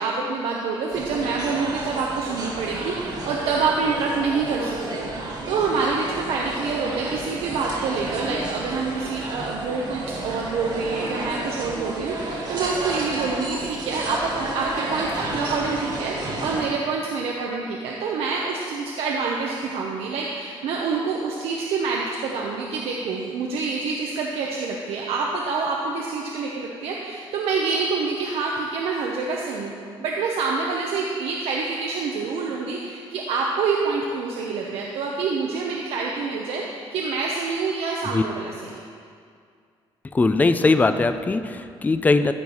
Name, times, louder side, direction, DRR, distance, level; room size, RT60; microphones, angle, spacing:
voice 1, 0.0-29.7 30.0-38.8, right 4 dB, 80° right, -1 dB, 0.9 m, -27 dB
sound 1, 0.9-16.6, right 2 dB, 45° right, 1.7 m, -31 dB
voice 2, 40.1-42.3, left 3 dB, 15° left, 10 dB, 0.4 m, -20 dB
14.0 x 4.7 x 5.5 m, 2.2 s
cardioid pair, 120°, 10 cm